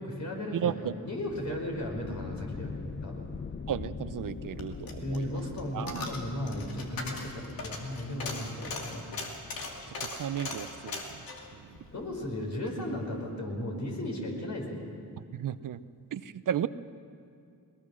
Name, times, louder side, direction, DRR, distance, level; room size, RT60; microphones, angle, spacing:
voice 1, 0.0-3.3 5.0-9.1 11.9-14.8, left 1 dB, 55° left, 0 dB, 5.1 m, -35 dB
voice 2, 0.5-0.9 3.7-5.4 5.7-6.1 9.9-11.2 11.5-11.6 15.3-15.8 16.1-16.7, right 10 dB, 65° right, 14 dB, 0.7 m, -34 dB
sound 1, 1.3-12.7, left 5 dB, 35° left, 0.7 m, -44 dB
Coin (dropping), 4.3-12.8 13.1-13.2, left 3 dB, 80° left, 2.5 m, -40 dB
21.0 x 20.0 x 6.2 m, 2.4 s
cardioid pair, 70°, 35 cm